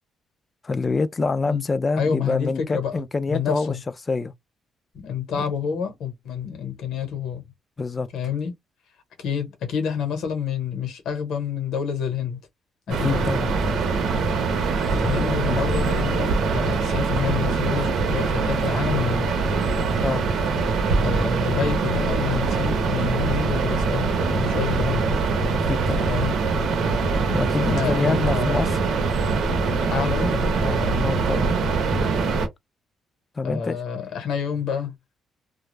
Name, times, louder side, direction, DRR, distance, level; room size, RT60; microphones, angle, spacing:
voice 1, 0.6-3.7 4.1-4.3 5.3-5.4 7.8-8.1 12.9-13.5 20.0-20.2 25.6-26.1 27.3-28.7 30.1-30.2 30.6-31.5 33.4-33.8, left 4 dB, 30° left, 0.4 m, -26 dB
voice 2, 1.9-3.8 5.0-7.4 8.1-8.5 9.2-12.4 12.9-13.2 14.6-19.3 21.0-25.1 26.1-26.4 27.6-28.6 29.9-30.5 33.4-34.9, left 7 dB, 80° left, 1.0 m, -28 dB
sound 1, 12.9-32.5, right 4 dB, 75° right, 0.8 m, -23 dB
2.3 x 2.0 x 3.1 m
cardioid pair, 90°, 0 cm